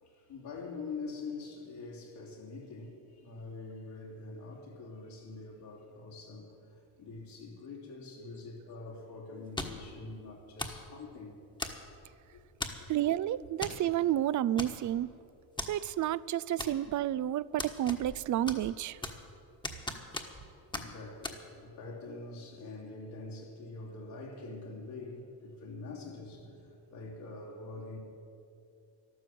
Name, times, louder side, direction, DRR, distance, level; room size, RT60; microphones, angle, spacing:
voice 1, 0.0-11.5 12.3-12.4 20.7-28.0, left 3 dB, 75° left, -4 dB, 3.1 m, -45 dB
sound 1, 9.6-9.9 10.6-10.9 11.6-12.0 12.6-12.9 13.6-13.8 14.1-14.2 14.6-15.1 15.6-15.7 16.6-17.1 17.6-18.2 18.5-19.3 19.6-20.5 20.7-20.9 21.2-21.4, left 2 dB, 10° left, 1.3 m, -38 dB
voice 2, 12.9-15.1 15.7-19.0, right 12 dB, 50° right, 20 dB, 0.4 m, -30 dB
12.5 x 12.5 x 7.7 m, 2.6 s
cardioid pair, 110°, 40 cm